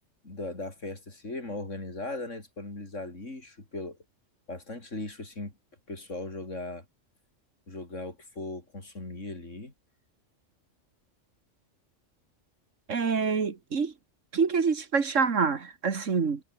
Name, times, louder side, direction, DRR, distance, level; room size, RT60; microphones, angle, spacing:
voice 1, 0.2-4.0 4.5-5.5 5.9-6.9 7.7-9.7, left 2 dB, 80° left, 5.2 m, -38 dB
voice 2, 12.9-13.9 14.3-16.4, right 5 dB, 85° right, 2.2 m, -26 dB
omnidirectional pair, 1.3 m